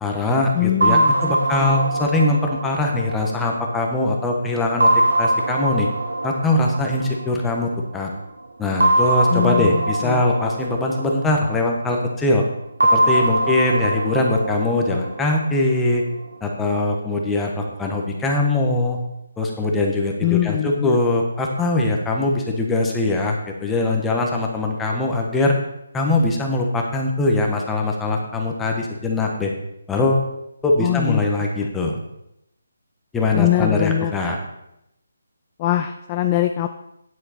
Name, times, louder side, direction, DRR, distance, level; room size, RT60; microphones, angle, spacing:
voice 1, 0.0-4.9 5.2-5.9 6.2-8.1 8.6-12.4 12.9-16.0 16.4-19.0 19.4-25.5 25.9-29.5 29.9-30.3 30.6-32.0 33.1-34.4, left 2 dB, 10° left, 0 dB, 1.3 m, -21 dB
voice 2, 0.5-1.4 9.3-10.2 20.2-21.0 30.8-31.2 33.3-34.1 35.6-36.7, left 13 dB, 25° left, 7 dB, 0.4 m, -22 dB
sound 1, 0.8-4.1 4.8-7.7 8.8-11.9 12.8-15.9, right 1 dB, 80° right, 1.2 m, -22 dB
9.6 x 7.7 x 4.3 m, 0.83 s
figure-of-eight pair, 160°, 0 cm